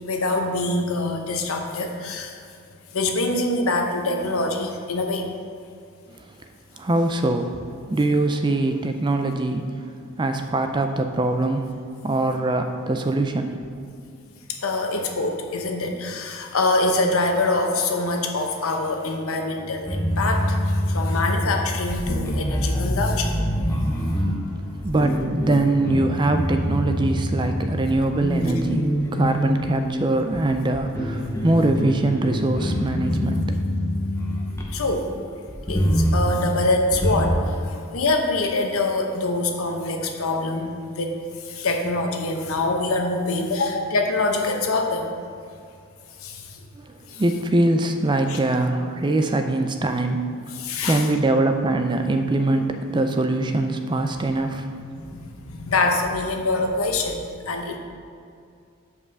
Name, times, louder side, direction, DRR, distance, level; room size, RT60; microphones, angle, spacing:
voice 1, 0.1-2.4 2.9-5.3 14.6-23.3 34.7-35.1 35.7-45.2 46.2-46.6 47.1-47.2 48.3-48.4 50.6-51.1 54.9-57.8, left 2 dB, 70° left, 3 dB, 0.8 m, -25 dB
voice 2, 6.8-7.5 7.9-9.7 10.2-11.7 12.0-13.6 24.8-28.9 29.1-33.6 46.8-46.9 47.2-50.2 50.8-54.8, right 2 dB, 20° right, 6 dB, 0.3 m, -22 dB
sound 1, 19.6-35.0 35.5-37.3, equal, 10° left, 0.7 m, -25 dB
5.5 x 4.8 x 6.3 m, 2.4 s
head